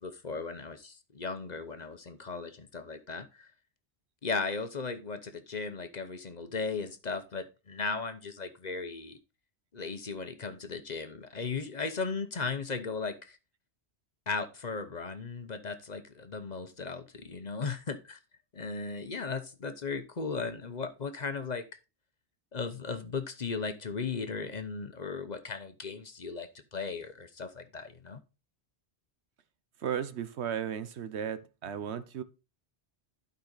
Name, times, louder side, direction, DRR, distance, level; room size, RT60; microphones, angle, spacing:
voice 1, 0.0-3.5 4.2-9.2 9.7-13.4 14.3-18.2 18.5-21.7 22.5-28.2, left 4 dB, 45° left, 0.9 m, -36 dB
voice 2, 29.8-32.2, right 8 dB, 80° right, 1.1 m, -35 dB
12.0 x 5.4 x 4.0 m
omnidirectional pair, 1.1 m